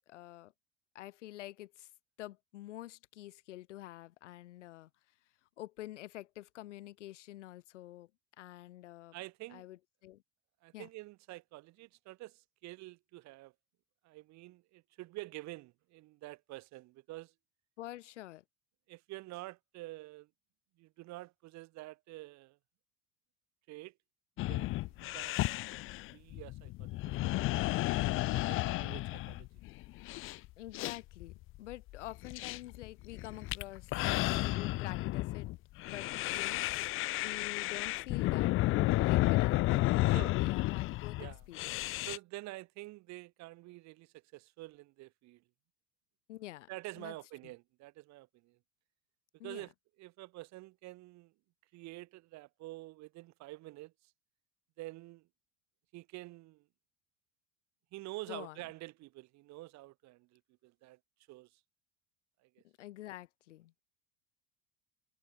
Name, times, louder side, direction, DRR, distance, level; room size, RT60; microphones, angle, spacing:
voice 1, 0.1-0.5 0.9-1.9 2.2-4.9 5.6-8.1 8.4-9.2 9.5-10.2 10.7-10.9 17.8-18.4 30.6-35.5 35.8-38.5 39.0-42.1 46.3-46.7 47.0-47.1 47.4-47.5 49.4-49.7 58.3-58.6 62.6-63.7, left 15 dB, 80° left, 2.3 m, -48 dB
voice 2, 9.1-9.6 10.6-13.5 14.0-17.3 18.9-20.3 20.8-22.6 23.7-23.9 24.5-25.5 26.1-27.5 28.0-29.5 40.1-40.3 41.2-41.4 42.1-45.4 46.7-48.6 49.4-49.7 50.0-51.3 51.7-53.9 54.8-55.3 55.9-56.7 57.9-61.0 61.3-61.6 62.4-62.6, right 19 dB, 50° right, 1.0 m, -48 dB
sound 1, 24.4-42.2, left 18 dB, 35° left, 0.4 m, -32 dB
hypercardioid pair, 75°, 36 cm